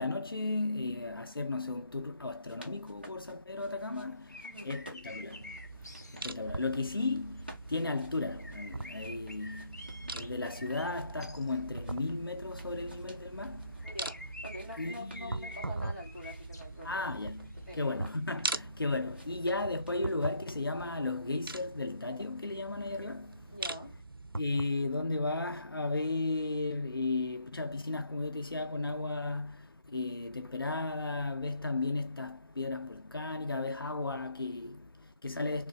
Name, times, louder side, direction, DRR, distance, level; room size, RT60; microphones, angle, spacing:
voice 1, 0.0-13.9 14.8-15.5 16.8-23.5 24.4-35.7, left 3 dB, 80° left, 0.5 m, -35 dB
sound 1, 2.2-4.1 4.4-6.3 6.6-7.1 7.4-11.4 11.7-14.0 14.3-15.7 16.1-18.6 19.1-20.6, right 1 dB, 25° right, 0.7 m, -55 dB
sound 2, 4.1-7.4 7.8-7.9 8.3-11.9 12.5-12.6 13.4-13.5 13.8-18.4, left 2 dB, 50° left, 0.7 m, -50 dB
voice 2, 4.4-4.8 13.8-17.1 17.7-17.8 19.0-19.4 23.5-23.9, equal, 35° left, 1.6 m, -45 dB
sound 3, 5.1-24.7, right 2 dB, 85° right, 0.5 m, -42 dB
3.6 x 3.2 x 2.9 m
figure-of-eight pair, 175°, 12 cm